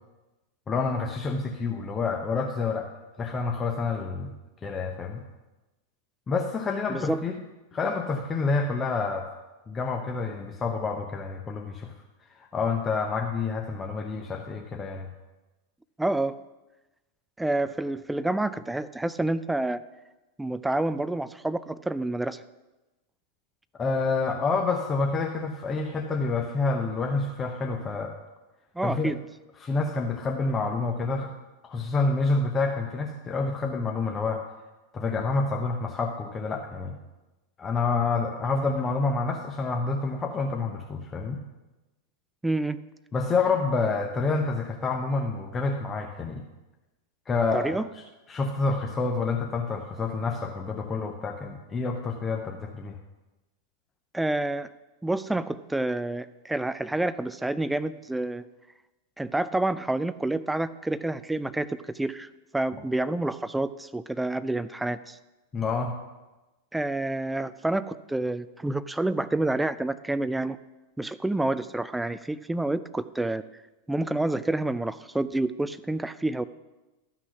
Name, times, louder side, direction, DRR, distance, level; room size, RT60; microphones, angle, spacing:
voice 1, 0.7-2.9 3.2-4.3 4.6-5.2 6.3-7.3 7.7-9.3 9.7-11.9 12.5-15.1 23.8-28.1 28.8-29.1 29.6-31.3 31.6-34.4 34.9-36.9 37.6-41.4 43.1-46.4 47.3-47.8 48.3-53.0 65.5-66.0, left 4 dB, 20° left, 2 dB, 0.8 m, -28 dB
voice 2, 6.9-7.2 16.0-16.3 17.4-19.8 20.4-22.4 28.8-29.2 42.4-42.8 47.5-47.9 54.1-54.7 55.0-58.4 59.2-65.2 66.7-70.6 71.0-73.4 73.9-76.4, right 2 dB, 5° right, 14 dB, 0.3 m, -28 dB
12.5 x 6.0 x 5.8 m, 1.1 s
figure-of-eight pair, 90°, 0 cm